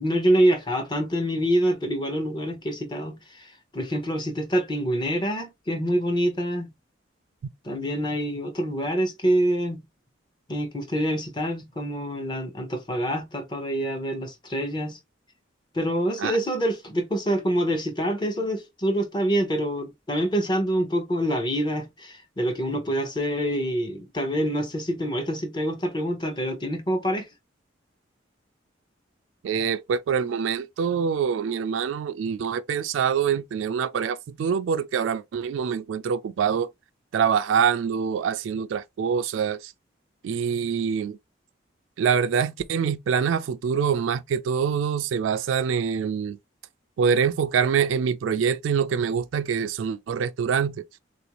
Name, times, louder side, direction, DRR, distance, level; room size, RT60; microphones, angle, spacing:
voice 1, 0.0-6.7 7.6-9.8 10.5-15.0 15.7-27.3, equal, 25° left, 0.7 m, -26 dB
voice 2, 29.4-36.7 37.1-39.7 40.2-41.2 42.0-46.4 47.0-50.8, right 7 dB, 90° right, 0.3 m, -25 dB
3.5 x 2.5 x 2.9 m
head